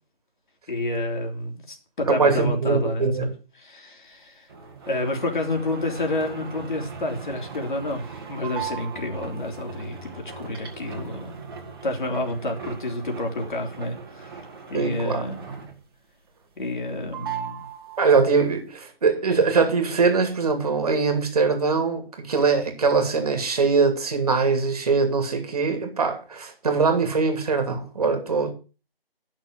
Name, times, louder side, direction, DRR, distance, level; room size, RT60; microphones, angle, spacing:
voice 1, 0.7-3.3 3.5-4.5 4.9-11.4 11.8-14.3 14.7-15.4 16.6-17.7, left 1 dB, 55° left, 3.3 m, -29 dB
voice 2, 2.1-3.3 14.7-15.6 18.0-28.5, right 4 dB, 40° right, 2.7 m, -22 dB
sound 1, 4.5-16.0 16.3-16.9 17.1-18.4, right 6 dB, 25° right, 2.1 m, -38 dB
11.0 x 6.5 x 6.3 m
figure-of-eight pair, 165°, 30 cm